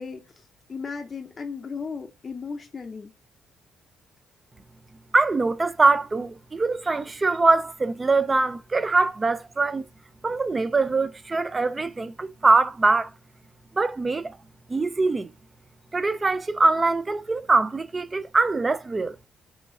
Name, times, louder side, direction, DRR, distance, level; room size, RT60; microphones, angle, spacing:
voice 1, 0.0-3.1, left 5 dB, 40° left, 0.5 m, -36 dB
voice 2, 5.1-9.9 10.2-13.1 13.8-14.4 14.7-15.3 15.9-19.2, right 3 dB, 25° right, 0.4 m, -23 dB
3.1 x 3.1 x 3.7 m
cardioid pair, 90°, 0 cm